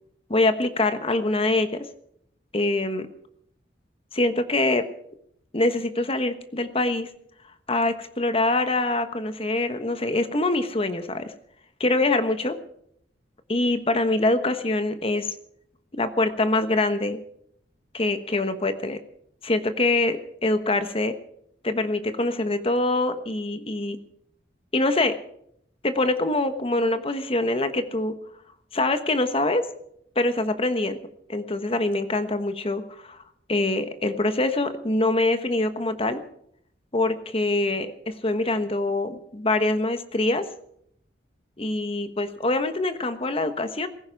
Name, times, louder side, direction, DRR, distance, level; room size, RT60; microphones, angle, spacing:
voice 1, 0.3-1.8 2.5-3.1 4.1-4.8 5.5-7.1 7.7-11.3 11.8-12.5 13.5-15.3 15.9-17.2 17.9-19.0 19.4-21.1 21.6-24.0 24.7-25.2 25.8-28.1 28.7-29.7 30.1-31.0 31.3-33.2 33.5-36.2 36.9-40.5 41.6-43.9, left 2 dB, 35° left, 9 dB, 1.3 m, -24 dB
18.0 x 15.5 x 4.8 m, 0.68 s
head